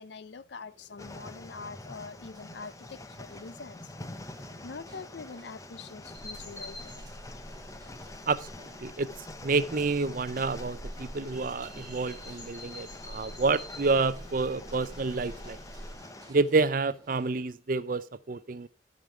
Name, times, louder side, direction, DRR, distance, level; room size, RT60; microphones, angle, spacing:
voice 1, 0.0-3.8 4.3-7.0, left 4 dB, 65° left, 0.6 m, -44 dB
sound 1, 0.7-17.4, right 1 dB, 20° right, 1.6 m, -57 dB
sound 2, 1.0-16.3, left 2 dB, 15° left, 0.6 m, -47 dB
sound 3, 6.1-16.0, equal, 35° left, 4.0 m, -45 dB
voice 2, 8.8-15.6 16.3-18.7, right 3 dB, 45° right, 0.5 m, -29 dB
13.0 x 5.1 x 4.3 m
head